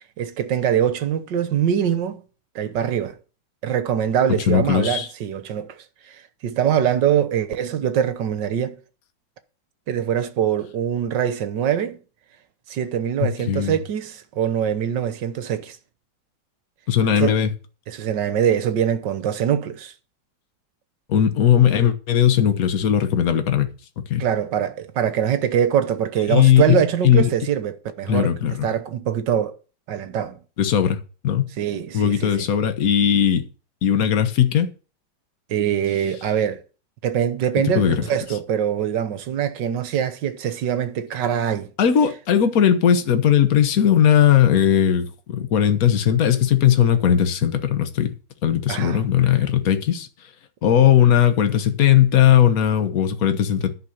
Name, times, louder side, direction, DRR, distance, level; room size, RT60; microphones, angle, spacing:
voice 1, 0.2-2.2 2.5-3.2 3.6-5.8 6.1-6.2 6.4-8.8 9.9-12.0 12.7-15.8 17.1-17.4 17.9-19.9 24.2-28.3 28.6-29.6 29.9-30.4 31.6-32.5 35.5-36.6 37.0-41.7 48.7-49.0, right 9 dB, 65° right, 1.6 m, -23 dB
voice 2, 4.3-5.1 13.2-13.8 16.9-17.5 21.1-23.7 24.0-24.2 26.3-27.3 28.1-28.7 30.6-31.5 31.9-33.5 33.8-34.7 37.7-38.0 41.8-48.2 48.4-50.1 50.6-53.7, left 9 dB, 50° left, 1.4 m, -18 dB
10.5 x 5.8 x 7.9 m
omnidirectional pair, 2.2 m